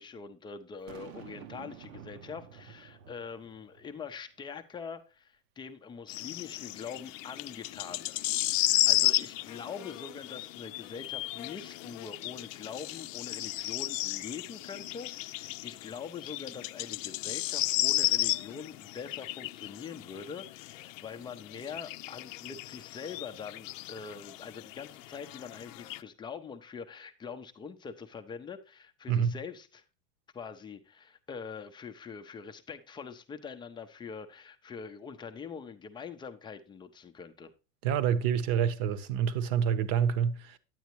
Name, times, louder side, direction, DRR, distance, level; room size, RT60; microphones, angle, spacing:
voice 1, 0.0-29.8 30.3-37.5, left 6 dB, 10° left, 0.5 m, -44 dB
Boom, 0.9-4.2, right 9 dB, 70° right, 1.0 m, -50 dB
sound 1, 6.1-26.0, left 16 dB, 65° left, 0.6 m, -34 dB
voice 2, 37.8-40.6, right 8 dB, 45° right, 1.0 m, -27 dB
9.3 x 9.2 x 3.0 m
supercardioid pair, 135°, 41 cm